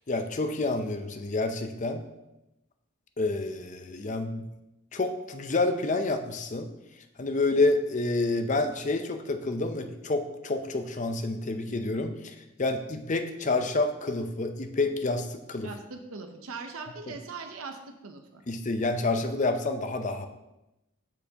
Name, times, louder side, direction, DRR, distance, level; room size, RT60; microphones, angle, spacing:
voice 1, 0.1-2.0 3.2-4.4 4.9-6.7 7.2-15.7 18.5-20.3, left 2 dB, 35° left, 7 dB, 0.6 m, -28 dB
voice 2, 15.6-17.8 18.0-18.4, right 4 dB, 80° right, 5 dB, 0.7 m, -40 dB
13.0 x 4.5 x 2.9 m, 0.94 s
head